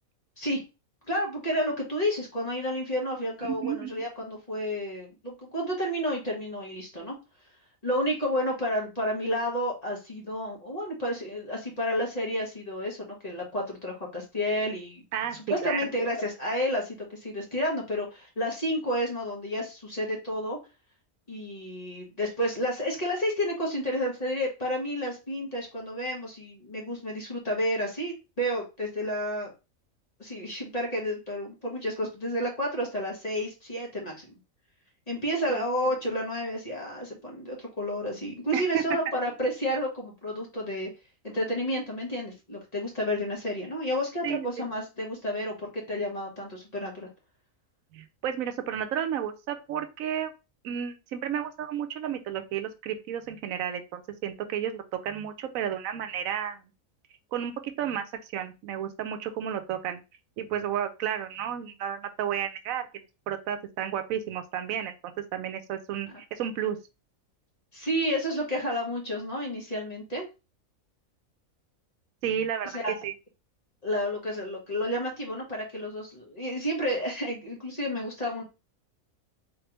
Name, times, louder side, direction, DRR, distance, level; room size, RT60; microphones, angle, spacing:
voice 1, 1.1-7.1 7.8-15.0 15.5-20.6 21.3-29.5 30.2-34.3 35.1-40.9 41.2-47.1 67.7-70.3 72.6-72.9 73.8-78.4, equal, 30° left, -2 dB, 1.3 m, -31 dB
voice 2, 3.4-3.9 15.1-15.8 35.5-35.6 38.5-38.8 44.2-44.5 47.9-50.3 50.6-56.6 57.3-60.0 60.4-66.8 72.2-73.1, right 9 dB, 80° right, 8 dB, 1.0 m, -32 dB
3.8 x 3.3 x 2.9 m, 0.28 s
omnidirectional pair, 1.4 m